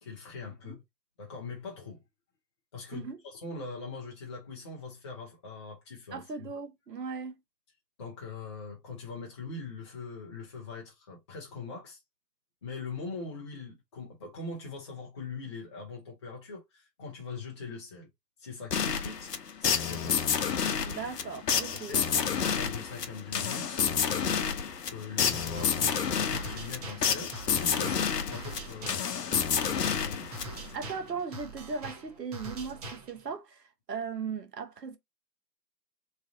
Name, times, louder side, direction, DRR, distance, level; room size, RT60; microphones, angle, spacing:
voice 1, 0.0-0.8 1.2-2.0 2.7-6.3 8.0-12.0 12.6-18.1 18.4-19.3 19.6-20.1 21.7-30.3, left 4 dB, 20° left, 0.5 m, -42 dB
voice 2, 6.1-7.3 20.8-22.3 30.7-35.0, right 5 dB, 70° right, 1.1 m, -38 dB
sound 1, 18.7-30.8, left 7 dB, 70° left, 0.7 m, -29 dB
sound 2, 25.3-33.3, right 2 dB, 25° right, 0.6 m, -44 dB
3.2 x 2.4 x 3.6 m
figure-of-eight pair, 130°, 50 cm